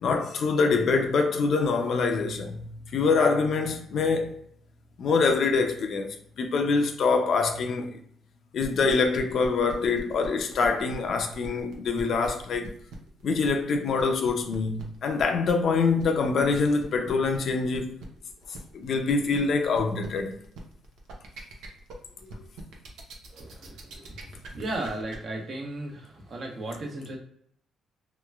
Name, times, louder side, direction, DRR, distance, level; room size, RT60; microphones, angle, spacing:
voice 1, 0.0-4.3 5.0-8.0 8.5-12.7 13.2-18.0 18.7-20.4, left 4 dB, 60° left, 0.5 m, -25 dB
sound 1, 8.6-25.2, right 3 dB, 85° right, 0.7 m, -43 dB
voice 2, 23.3-24.2 24.5-27.2, right 1 dB, 50° right, 0.9 m, -35 dB
3.1 x 2.9 x 2.3 m
cardioid pair, 90°, 0 cm